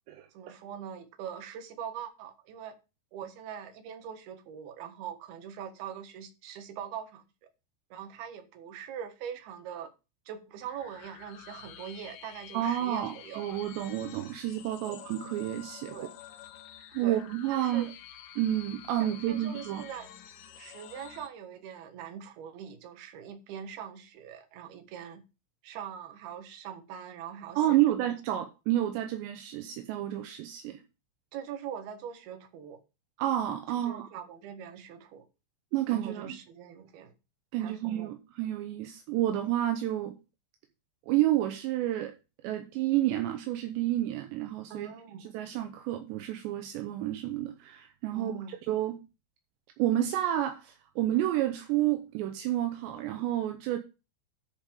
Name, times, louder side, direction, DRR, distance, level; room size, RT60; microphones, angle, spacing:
voice 1, 0.3-2.7 3.1-7.2 7.9-9.9 10.3-13.4 14.9-15.0 15.9-16.1 17.0-17.2 17.5-17.9 19.0-20.1 20.6-25.2 25.6-28.0 31.3-32.8 33.8-35.3 35.9-37.1 37.6-38.1 44.7-45.2 48.1-48.5, right 8 dB, 65° right, 2.9 m, -42 dB
sound 1, 10.6-21.3, left 11 dB, 85° left, 3.8 m, -49 dB
voice 2, 12.5-16.0 16.9-17.9 18.4-19.8 27.6-30.8 33.2-34.1 35.7-36.3 37.5-40.2 41.1-42.1 42.4-44.9 45.2-49.0 49.8-53.8, right 13 dB, 80° right, 2.7 m, -30 dB
10.5 x 5.3 x 5.2 m
omnidirectional pair, 5.7 m